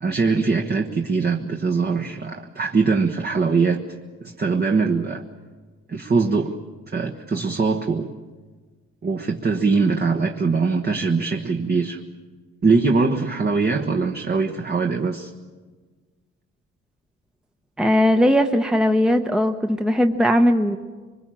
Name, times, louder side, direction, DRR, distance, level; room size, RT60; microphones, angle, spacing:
voice 1, 0.0-3.8 4.2-5.2 5.9-6.5 6.9-8.1 9.0-12.0 12.6-15.3, right 4 dB, 30° right, 3 dB, 1.3 m, -22 dB
voice 2, 17.8-20.8, equal, ahead, 5 dB, 1.0 m, -18 dB
24.0 x 22.0 x 7.6 m, 1.4 s
cardioid pair, 90°, 30 cm